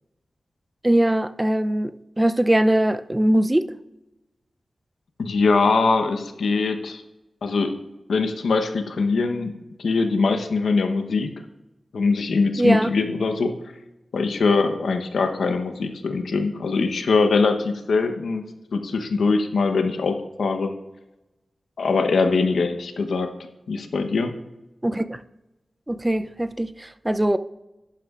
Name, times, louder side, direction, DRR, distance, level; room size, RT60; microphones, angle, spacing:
voice 1, 0.8-3.7 12.6-12.9 24.8-25.2 25.9-27.4, right 1 dB, 20° right, 0.5 m, -21 dB
voice 2, 5.2-7.0 7.4-7.7 8.1-9.5 9.8-11.3 11.9-13.5 14.1-18.4 18.7-20.7 21.8-23.3 23.7-24.3, left 4 dB, 85° left, 0.9 m, -22 dB
11.5 x 11.0 x 2.5 m
cardioid pair, 55°, 0 cm